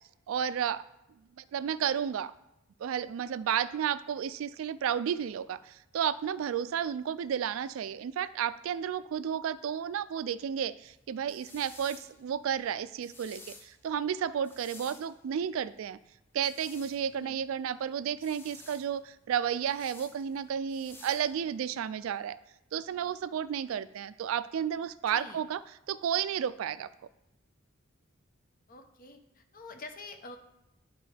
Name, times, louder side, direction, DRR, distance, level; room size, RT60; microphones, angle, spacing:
voice 1, 0.3-0.8 1.4-2.3 2.8-16.0 16.3-22.4 22.7-25.6 25.9-26.9, right 8 dB, 75° right, 16 dB, 0.3 m, -32 dB
sound 1, 10.8-21.8, left 2 dB, 10° left, 0.6 m, -54 dB
voice 2, 25.1-25.4 28.7-30.4, left 3 dB, 45° left, 6 dB, 0.8 m, -47 dB
11.0 x 4.2 x 3.4 m, 0.87 s
head